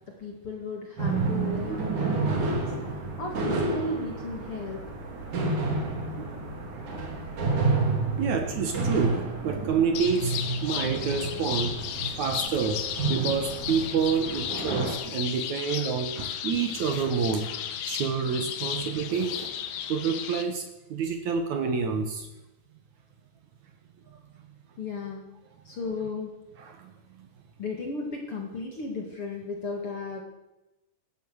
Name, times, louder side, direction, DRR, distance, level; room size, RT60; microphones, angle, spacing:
voice 1, 0.1-2.7 3.2-4.8 24.8-25.3 25.6-26.3 27.6-30.2, left 3 dB, 45° left, 1 dB, 1.9 m, -35 dB
sound 1, 1.0-14.9, right 3 dB, 45° right, 3.7 m, -30 dB
voice 2, 8.2-11.8 12.2-12.8 13.1-17.5 17.9-19.5 19.9-22.3 24.1-24.2 26.6-26.9 27.2-27.3, right 6 dB, 75° right, 7 dB, 1.7 m, -28 dB
sound 2, 10.0-20.4, left 9 dB, 75° left, 3.3 m, -34 dB
17.0 x 13.0 x 6.3 m, 1.0 s
omnidirectional pair, 5.1 m